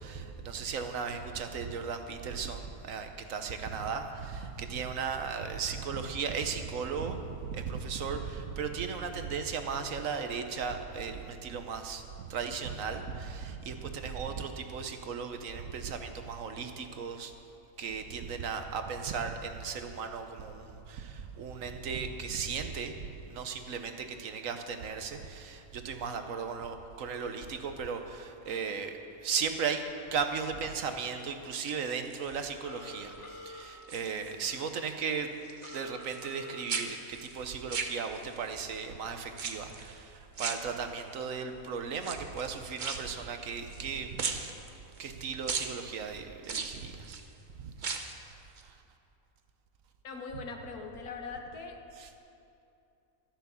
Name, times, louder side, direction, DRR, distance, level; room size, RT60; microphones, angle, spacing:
voice 1, 0.0-17.3 17.8-29.8 30.1-35.3 35.7-44.4 45.0-47.2 47.6-47.7 48.6-48.8 52.0-52.1, right 6 dB, 65° right, 7 dB, 1.2 m, -36 dB
sound 1, 31.4-32.4 32.9-33.3 33.6-34.6 34.9-36.4 36.7-38.5 39.3-39.9 40.4-41.2 41.9-43.9 44.2-45.1 45.5-45.7 46.4-47.3 47.7-48.2 48.6-48.7, right 5 dB, 40° right, 0.8 m, -38 dB
Telephone, 32.6-33.6 35.6-36.6, left 2 dB, 55° left, 1.7 m, -46 dB
voice 2, 50.0-51.8, left 4 dB, 85° left, 3 dB, 1.8 m, -41 dB
13.0 x 10.5 x 7.0 m, 2.7 s
omnidirectional pair, 1.5 m